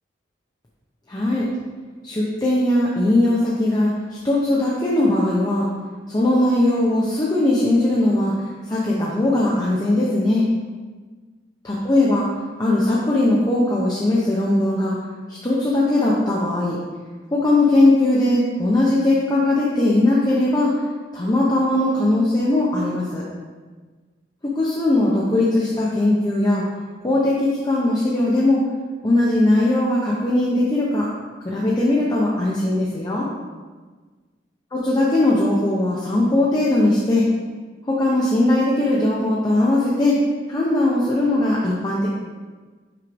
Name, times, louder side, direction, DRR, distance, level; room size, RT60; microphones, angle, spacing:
voice 1, 1.1-1.5 2.0-3.9 4.2-5.7 6.1-8.3 8.7-10.5 11.6-12.2 12.6-15.0 15.3-16.8 17.3-20.7 21.1-23.2 24.4-26.6 27.0-28.6 29.0-31.1 31.4-33.3 34.7-37.3 37.9-40.2 40.5-42.1, left 1 dB, 20° left, -5 dB, 0.7 m, -19 dB
6.0 x 3.2 x 5.1 m, 1.4 s
head